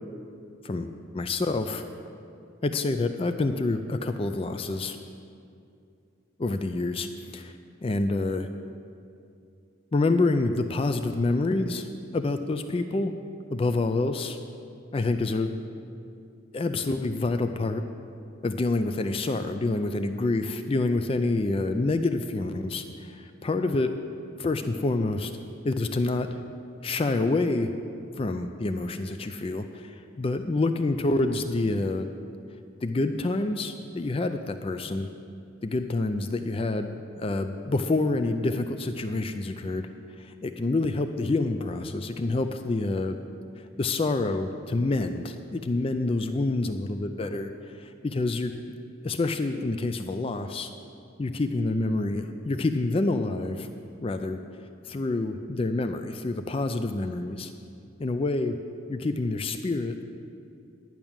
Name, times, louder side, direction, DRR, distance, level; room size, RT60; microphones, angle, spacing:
voice 1, 1.1-1.8 2.6-5.0 6.4-7.1 7.3-7.5 7.8-8.5 9.9-11.9 12.1-13.1 13.5-14.4 14.9-15.5 16.5-17.8 18.4-23.9 24.4-25.3 25.6-26.4 26.8-27.7 28.2-32.1 32.8-35.1 35.6-39.9 40.2-43.2 43.6-47.5 47.8-48.6 49.0-50.7 51.2-53.7 54.0-54.4 54.9-57.5 58.0-58.6 58.9-59.9, left 2 dB, 30° left, 8 dB, 0.4 m, -27 dB
11.0 x 6.0 x 8.7 m, 2.5 s
head